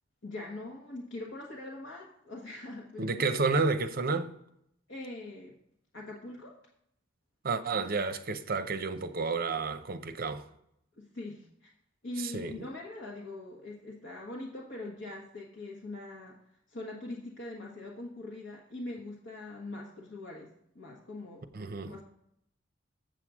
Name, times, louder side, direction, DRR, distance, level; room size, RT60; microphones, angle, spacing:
voice 1, 0.2-3.8 4.9-5.5 5.9-6.5 11.0-11.7 12.0-16.4 16.7-20.5 20.7-21.5 21.8-22.0, left 2 dB, 75° left, 1.3 m, -42 dB
voice 2, 3.0-4.3 7.4-10.4 12.2-12.7 21.5-21.9, right 4 dB, 50° right, 0.7 m, -31 dB
7.7 x 7.4 x 4.8 m
head